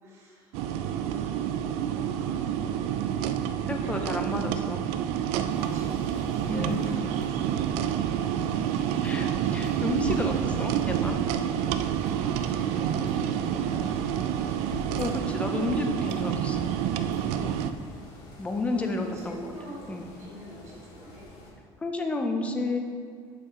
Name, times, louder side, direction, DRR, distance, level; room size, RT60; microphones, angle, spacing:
voice 1, 0.0-3.1 3.8-4.8 5.5-8.6 12.0-14.8 18.7-21.3, right 1 dB, 25° right, -5 dB, 1.5 m, -45 dB
extractor fan, 0.5-17.7, right 9 dB, 75° right, 0.4 m, -28 dB
voice 2, 3.7-4.8 6.5-6.8 9.0-11.2 14.9-16.8 17.4-17.9 18.4-19.5 19.9-20.1 21.8-22.8, left 2 dB, 10° left, 4 dB, 0.5 m, -31 dB
sound 1, 5.5-21.5, left 1 dB, 70° left, 1.9 m, -46 dB
8.4 x 5.4 x 3.7 m, 2.1 s
cardioid pair, 180°, 11 cm